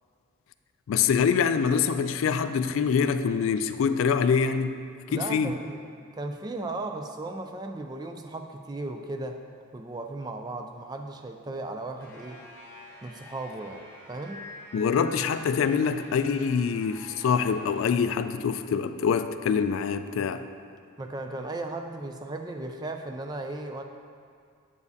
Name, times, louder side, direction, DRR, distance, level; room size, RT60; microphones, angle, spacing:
voice 1, 0.9-4.8 5.1-5.5 14.7-20.4, left 6 dB, 75° left, 11 dB, 0.3 m, -25 dB
voice 2, 5.1-5.8 6.1-9.4 9.7-12.4 13.0-14.5 21.0-23.8, right 2 dB, 20° right, 5 dB, 0.3 m, -36 dB
sound 1, 12.0-17.8, left 1 dB, 10° left, 1.0 m, -47 dB
8.2 x 7.0 x 2.7 m, 2.2 s
head